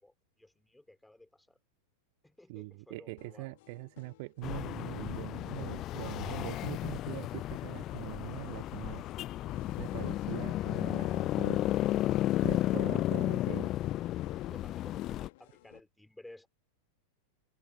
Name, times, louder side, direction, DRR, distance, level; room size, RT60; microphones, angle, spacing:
voice 1, 0.0-1.6 2.2-3.5 14.5-16.5, left 1 dB, 5° left, 6.2 m, -55 dB
voice 2, 2.5-9.0 9.8-11.7 12.4-13.7, right 25 dB, 50° right, 0.4 m, -42 dB
sound 1, 3.2-15.8, left 20 dB, 50° left, 2.6 m, -59 dB
sound 2, 4.4-15.3, left 14 dB, 35° left, 0.3 m, -33 dB
figure-of-eight pair, 90°, 0 cm